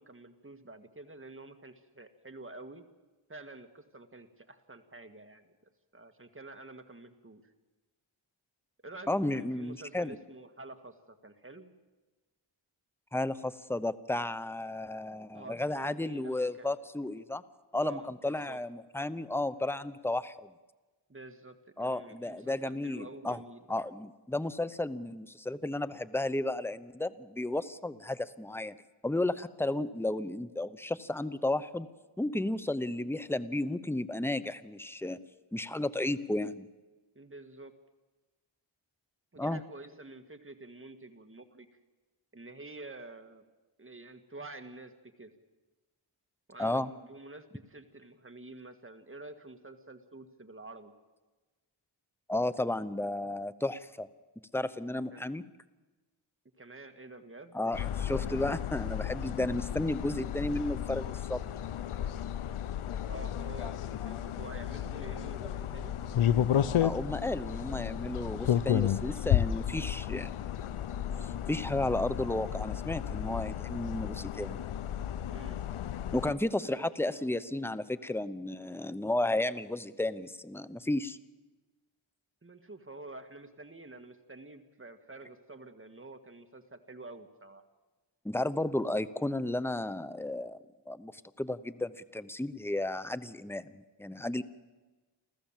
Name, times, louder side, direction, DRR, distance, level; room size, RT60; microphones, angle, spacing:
voice 1, 0.0-2.8 3.3-5.4 5.9-7.4 8.8-11.7 15.3-16.8 17.8-18.6 21.1-23.7 37.2-37.7 39.3-41.7 42.3-43.4 43.8-44.9 45.2-45.3 46.5-50.9 55.1-55.2 56.6-57.6 63.1-66.0 75.3-75.6 76.6-77.2 82.4-87.6, right 2 dB, 25° right, 8 dB, 1.9 m, -48 dB
voice 2, 9.1-10.2 13.1-17.4 17.7-20.5 21.8-23.4 23.7-28.7 29.0-31.9 32.2-35.2 35.5-36.7 39.4-39.6 46.6-46.9 52.3-54.1 54.5-55.4 57.5-61.4 66.8-70.3 71.5-74.6 76.1-81.2 88.2-90.6 90.9-94.4, left 1 dB, 5° left, 15 dB, 0.9 m, -33 dB
sound 1, 57.7-76.3, left 10 dB, 80° left, 0.7 m, -33 dB
28.5 x 14.5 x 7.5 m, 1.2 s
cardioid pair, 55°, 49 cm